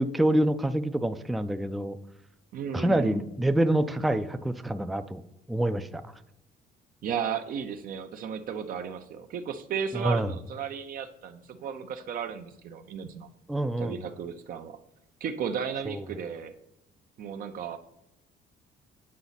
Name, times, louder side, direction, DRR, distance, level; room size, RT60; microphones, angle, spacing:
voice 1, 0.0-2.0 2.7-5.2 5.5-6.0 9.9-10.3 13.5-14.0 15.9-16.0, right 1 dB, ahead, 9 dB, 0.3 m, -26 dB
voice 2, 2.5-3.3 7.0-13.3 13.8-14.8 15.2-16.5 17.2-17.8, right 7 dB, 55° right, 7 dB, 0.5 m, -34 dB
8.4 x 4.9 x 4.0 m, 0.83 s
cardioid pair, 110°, 17 cm